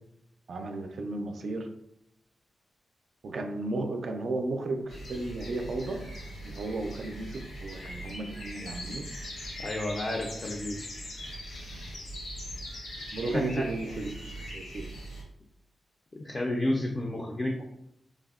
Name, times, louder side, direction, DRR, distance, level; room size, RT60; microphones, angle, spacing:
voice 1, 0.5-1.7 3.2-6.0 6.4-9.0 13.1-14.8, right 2 dB, 60° right, 5 dB, 0.3 m, -34 dB
sound 1, 4.9-15.2, equal, 75° left, 0.7 m, -41 dB
voice 2, 9.6-10.9 13.0-13.1 13.3-13.7 16.2-17.6, left 1 dB, 30° left, -1 dB, 0.3 m, -31 dB
3.3 x 2.0 x 2.3 m, 0.79 s
wide cardioid pair, 130°, 0 cm